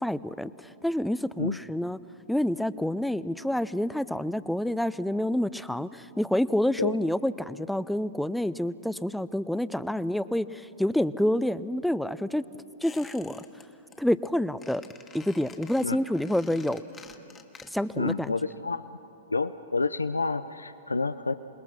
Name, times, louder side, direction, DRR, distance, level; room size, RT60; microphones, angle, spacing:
voice 1, 0.0-2.0 2.3-12.4 12.8-13.6 14.0-14.8 15.1-16.8 17.7-18.4, left 1 dB, ahead, 0.6 m, -28 dB
Squeak, 12.8-13.6 13.9-14.3 14.6-18.0 18.3-18.4, left 5 dB, 20° left, 1.5 m, -49 dB
voice 2, 18.0-18.9 19.3-21.3, left 3 dB, 85° left, 0.5 m, -29 dB
28.0 x 21.0 x 6.0 m
figure-of-eight pair, 105°, 0 cm